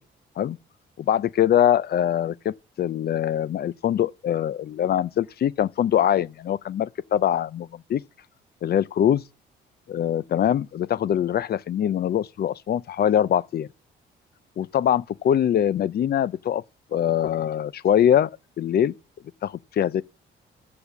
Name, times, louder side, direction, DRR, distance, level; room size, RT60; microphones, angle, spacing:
voice 1, 1.0-8.0 8.6-9.2 9.9-13.7 14.6-16.6 16.9-18.9 19.4-20.0, left 10 dB, 50° left, 0.6 m, -23 dB
10.0 x 6.9 x 7.1 m
cardioid pair, 90°, 20 cm